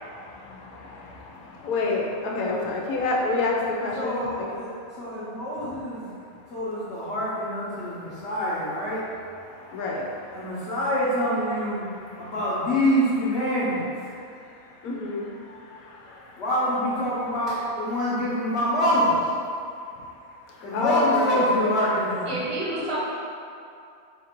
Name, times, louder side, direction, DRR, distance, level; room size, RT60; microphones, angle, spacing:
voice 1, 0.0-4.5 9.5-10.4 14.8-16.4 20.7-21.4, left 3 dB, 90° left, -2 dB, 1.1 m, -29 dB
voice 2, 3.9-6.1 6.5-9.0 10.3-11.9 12.2-14.1 16.4-19.3 20.6-22.4, equal, 55° left, -10 dB, 1.0 m, -25 dB
voice 3, 22.3-23.0, right 1 dB, 25° right, -7 dB, 0.8 m, -29 dB
3.9 x 2.5 x 4.4 m, 2.5 s
omnidirectional pair, 1.5 m